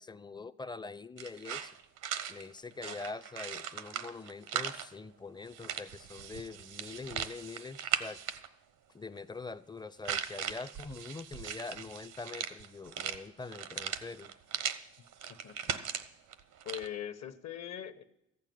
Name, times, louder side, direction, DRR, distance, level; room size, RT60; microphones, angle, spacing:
voice 1, 0.0-1.7 2.3-8.2 8.9-14.3, left 4 dB, 15° left, 16 dB, 0.4 m, -44 dB
sound 1, 1.2-4.9 5.5-8.5 10.0-14.8 15.1-16.9, right 9 dB, 90° right, 0.9 m, -38 dB
voice 2, 15.3-15.7 16.6-18.0, left 10 dB, 60° left, 11 dB, 1.0 m, -42 dB
14.5 x 6.7 x 9.3 m, 0.86 s
cardioid pair, 90°, 30 cm